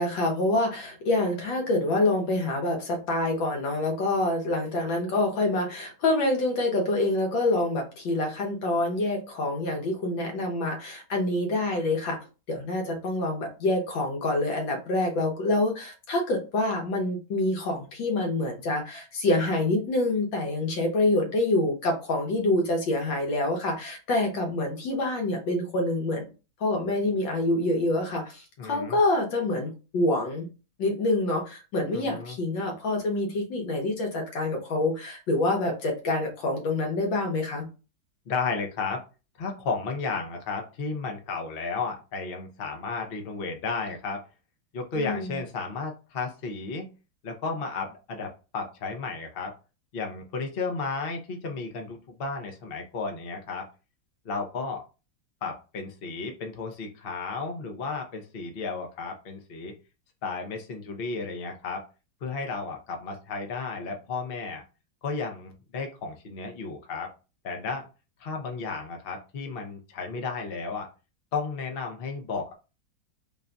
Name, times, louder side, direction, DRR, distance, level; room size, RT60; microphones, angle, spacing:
voice 1, 0.0-12.2 12.5-26.3 26.6-30.5 30.8-37.7 45.0-45.4, left 2 dB, 80° left, 1 dB, 1.8 m, -26 dB
voice 2, 28.6-29.0 31.9-32.4 38.3-39.0 39.4-44.2 44.7-46.9 47.2-49.5 49.9-53.6 54.2-54.8 55.4-59.7 60.2-61.8 62.2-64.6 65.0-67.1 67.4-67.9 68.2-70.9 71.3-72.5, left 4 dB, 60° left, 3 dB, 0.6 m, -33 dB
3.8 x 2.3 x 3.8 m, 0.32 s
omnidirectional pair, 2.1 m